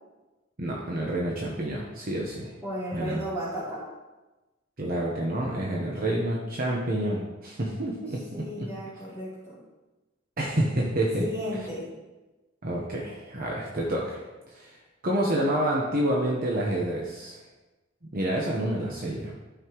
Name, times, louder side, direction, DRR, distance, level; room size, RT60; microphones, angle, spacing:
voice 1, 0.6-2.5 2.9-3.2 4.8-8.7 10.4-11.3 12.6-14.2 14.5-14.7 15.0-17.4 18.1-19.3, right 1 dB, 45° right, -3 dB, 1.1 m, -28 dB
voice 2, 2.6-3.8 8.3-9.6 11.2-11.9, equal, 15° right, -11 dB, 3.1 m, -34 dB
12.5 x 5.7 x 3.1 m, 1.1 s
head